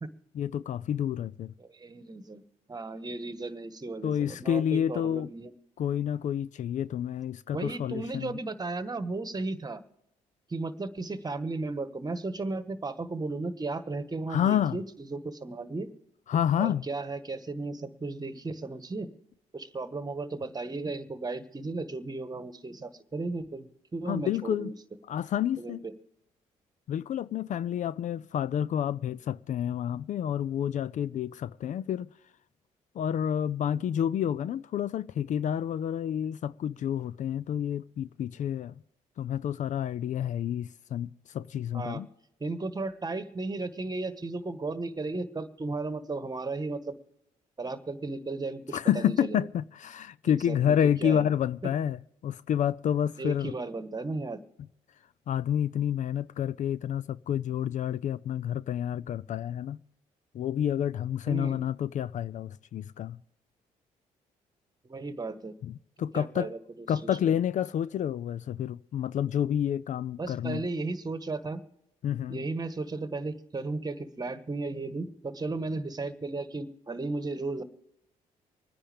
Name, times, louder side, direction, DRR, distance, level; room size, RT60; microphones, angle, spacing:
voice 1, 0.3-1.5 4.0-5.3 5.8-8.3 14.3-14.8 16.3-16.8 24.0-24.7 25.1-25.8 26.9-32.1 33.0-38.7 39.2-41.1 41.3-42.1 48.7-53.5 55.3-59.8 60.3-63.2 65.6-66.5 66.9-70.6 72.0-72.4, left 9 dB, 55° left, 0.4 m, -29 dB
voice 2, 1.6-2.4 2.7-5.5 7.5-9.8 10.5-15.9 16.6-19.1 19.5-24.7 25.6-25.9 41.7-42.0 42.4-46.9 47.6-49.5 50.2-51.3 51.6-51.7 53.2-54.4 61.3-61.6 64.8-65.5 66.1-67.3 70.2-71.6 72.3-77.6, right 3 dB, 25° right, 1.3 m, -35 dB
25.0 x 10.0 x 3.5 m
supercardioid pair, 60°, 15 cm